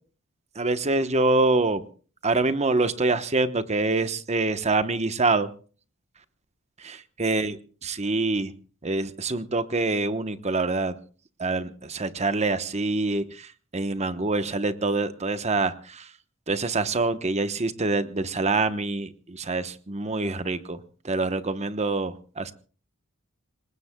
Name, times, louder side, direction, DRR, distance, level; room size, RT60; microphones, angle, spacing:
voice 1, 0.6-1.8 2.2-5.5 6.8-7.5 7.9-8.5 8.8-10.9 11.4-16.1 16.5-20.8 21.0-22.5, right 3 dB, 30° right, 11 dB, 1.0 m, -25 dB
26.5 x 20.0 x 2.3 m, 0.39 s
head